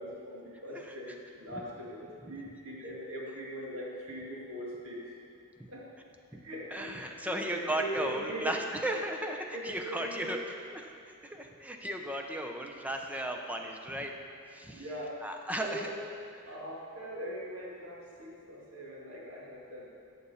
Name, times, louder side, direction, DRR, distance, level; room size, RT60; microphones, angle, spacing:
voice 1, 0.0-5.1 5.7-5.9 6.4-8.7 9.5-10.5 14.7-15.3 15.6-16.1 16.4-19.9, equal, 75° right, -4 dB, 2.2 m, -41 dB
voice 2, 6.7-10.4 10.7-10.8 11.2-14.1 14.5-14.8 15.2-15.9, right 1 dB, 5° right, 3 dB, 0.6 m, -35 dB
14.0 x 6.9 x 4.2 m, 2.4 s
head